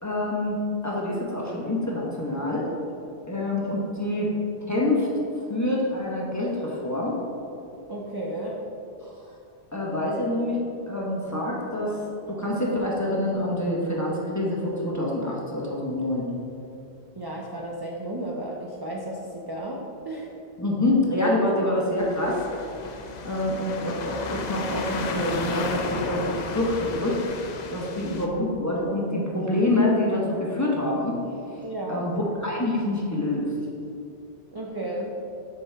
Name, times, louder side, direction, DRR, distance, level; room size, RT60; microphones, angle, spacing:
voice 1, 0.0-2.7 3.3-4.3 4.7-5.1 5.5-7.2 9.7-10.6 10.9-12.0 12.3-16.3 20.6-22.4 23.2-27.2 27.7-31.2 31.9-33.5, left 1 dB, 15° left, -4 dB, 0.9 m, -26 dB
voice 2, 7.9-8.6 17.2-20.3 31.6-32.1 34.5-35.1, right 1 dB, 35° right, -2 dB, 0.4 m, -33 dB
sound 1, 22.0-28.3, left 4 dB, 55° left, 0.5 m, -33 dB
7.1 x 4.9 x 3.4 m, 2.6 s
omnidirectional pair, 1.1 m